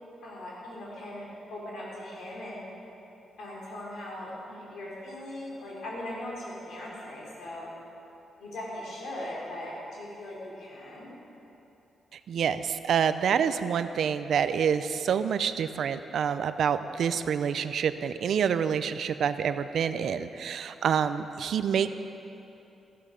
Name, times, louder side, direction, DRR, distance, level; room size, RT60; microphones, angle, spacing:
voice 1, 0.2-1.2 1.5-2.6 3.4-7.7 8.4-11.1, left 1 dB, 75° left, -5 dB, 3.3 m, -39 dB
voice 2, 12.3-21.9, right 7 dB, 60° right, 11 dB, 0.5 m, -27 dB
14.5 x 13.5 x 5.1 m, 2.9 s
wide cardioid pair, 165°, 0 cm